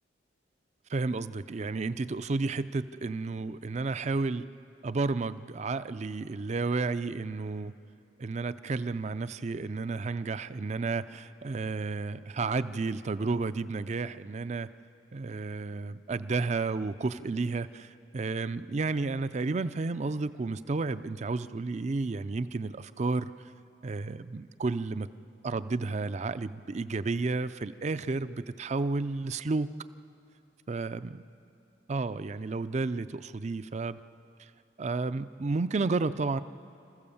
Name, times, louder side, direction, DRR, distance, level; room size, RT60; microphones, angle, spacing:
voice 1, 0.9-4.5 4.8-7.7 8.2-14.7 15.1-23.3 23.8-25.1 25.4-29.7 30.7-31.2 31.9-34.0 34.8-36.4, right 3 dB, 40° right, 14 dB, 0.4 m, -32 dB
27.5 x 15.0 x 7.1 m, 2.6 s
head